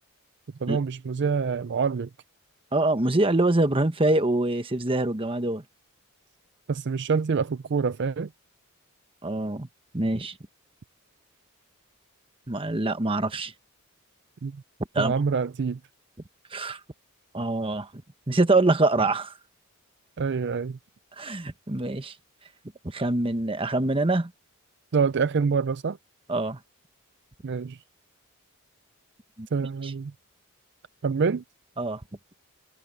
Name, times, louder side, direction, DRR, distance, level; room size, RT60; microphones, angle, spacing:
voice 1, 0.6-2.1 6.7-8.3 14.4-14.6 15.0-15.8 20.2-20.8 24.9-26.0 27.4-27.8 29.5-30.1 31.0-31.4, right 5 dB, 50° right, 0.4 m, -26 dB
voice 2, 2.7-5.6 9.2-9.7 9.9-10.3 12.5-13.5 14.9-15.1 16.5-16.8 17.3-17.9 18.3-19.3 21.2-22.1 22.8-24.3 26.3-26.6 29.4-29.5 29.8-29.9 31.8-32.0, right 2 dB, 25° right, 1.1 m, -24 dB
head